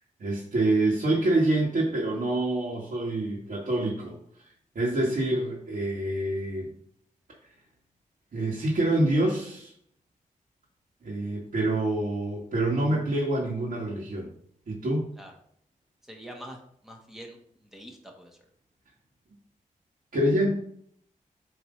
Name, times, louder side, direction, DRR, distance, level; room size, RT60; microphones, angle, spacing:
voice 1, 0.2-4.2 4.4-6.7 8.3-9.7 11.0-14.3 14.7-15.1 20.1-20.5, right 1 dB, 75° right, -5 dB, 1.6 m, -26 dB
voice 2, 16.0-18.4, equal, ahead, 1 dB, 1.2 m, -45 dB
7.7 x 3.2 x 5.0 m, 0.66 s
wide cardioid pair, 145°, 14 cm